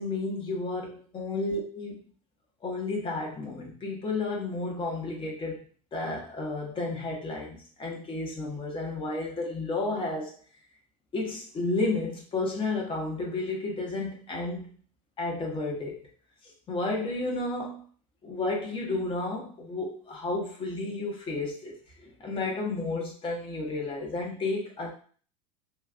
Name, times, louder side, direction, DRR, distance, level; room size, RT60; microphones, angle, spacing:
voice 1, 0.0-2.0 2.6-5.7 5.9-10.3 11.1-14.7 15.2-16.0 16.7-17.8 18.2-21.7 22.0-24.9, left 2 dB, 30° left, -1 dB, 1.2 m, -32 dB
3.2 x 3.1 x 2.5 m, 0.44 s
hypercardioid pair, 95°, 18 cm